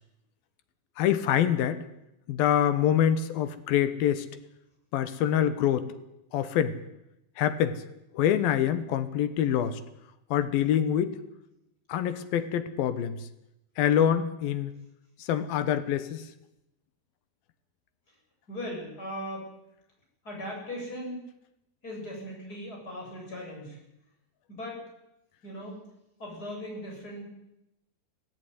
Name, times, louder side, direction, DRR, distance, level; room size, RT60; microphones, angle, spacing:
voice 1, 1.0-1.8 2.3-4.3 4.9-5.9 6.3-6.8 7.4-7.8 8.1-9.8 10.3-11.2 11.9-13.2 13.8-14.7 15.2-16.2, left 10 dB, 70° left, 12 dB, 2.8 m, -25 dB
voice 2, 18.5-19.4 20.2-21.2 21.8-23.8 24.5-24.8 25.4-25.8 26.2-27.3, equal, 20° left, -1 dB, 7.9 m, -38 dB
17.5 x 15.5 x 9.5 m, 0.86 s
omnidirectional pair, 4.5 m